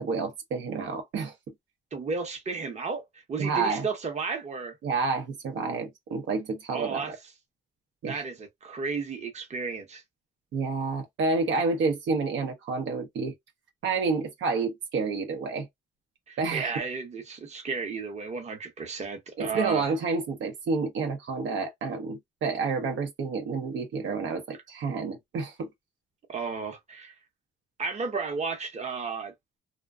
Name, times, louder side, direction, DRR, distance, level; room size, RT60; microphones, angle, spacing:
voice 1, 0.0-1.3 3.4-3.9 4.8-7.2 8.0-8.2 10.5-13.3 13.8-15.7 16.4-16.7 19.4-25.7, right 4 dB, 70° right, 0.7 m, -29 dB
voice 2, 1.9-4.7 6.7-7.1 8.1-10.0 16.3-19.9 26.3-27.1 27.8-29.3, right 5 dB, 35° right, 0.8 m, -33 dB
2.4 x 2.2 x 2.3 m
cardioid pair, 90°, 20 cm